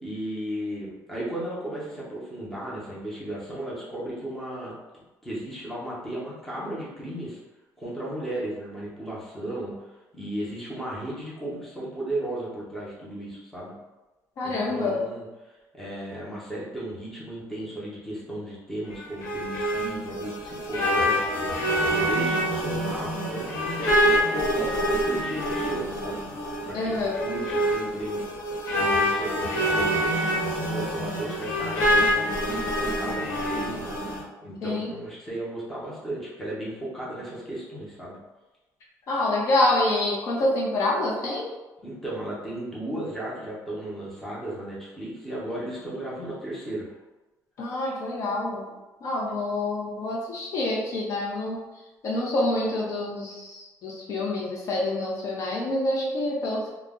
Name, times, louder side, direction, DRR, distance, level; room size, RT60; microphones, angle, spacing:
voice 1, 0.0-7.4 7.8-13.7 14.4-21.6 21.9-26.2 26.6-28.2 28.7-30.2 30.6-38.2 41.8-46.9, right 1 dB, 5° left, -7 dB, 0.7 m, -35 dB
voice 2, 14.4-15.0 26.7-27.1 34.6-34.9 39.1-41.5 47.6-48.6 49.0-51.6 52.0-56.7, left 2 dB, 50° left, -3 dB, 0.5 m, -27 dB
sound 1, 18.9-34.2, equal, 75° left, 0.9 m, -26 dB
2.4 x 2.1 x 3.5 m, 1.1 s
cardioid pair, 165°, 7 cm